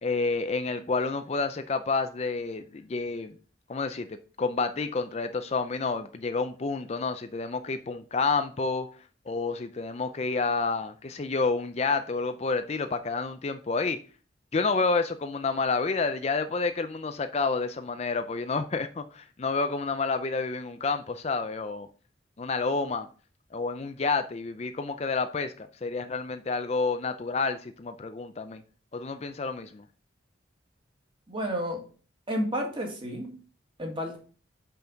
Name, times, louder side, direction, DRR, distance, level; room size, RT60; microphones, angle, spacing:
voice 1, 0.0-3.4 3.7-8.9 9.3-14.0 14.5-21.9 22.4-23.1 23.5-28.6 28.9-29.8, left 4 dB, 35° left, 0.4 m, -29 dB
voice 2, 31.3-31.8 32.3-33.4 33.8-34.2, equal, 25° right, 1.8 m, -31 dB
6.0 x 5.6 x 5.1 m
head